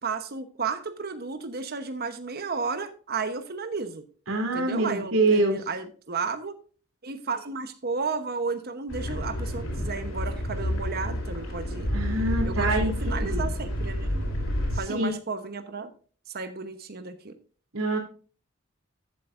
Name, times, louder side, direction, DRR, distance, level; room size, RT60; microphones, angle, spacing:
voice 1, 0.0-4.0 4.5-6.5 7.0-11.9 12.4-14.2 14.8-15.9 16.3-17.4, right 4 dB, 50° right, 8 dB, 1.0 m, -33 dB
voice 2, 4.3-5.6 11.9-13.5 14.9-15.1 17.7-18.0, right 2 dB, 75° right, 2 dB, 3.2 m, -25 dB
sound 1, 8.9-14.8, equal, 85° left, 4.1 m, -29 dB
14.0 x 8.0 x 2.6 m, 0.39 s
head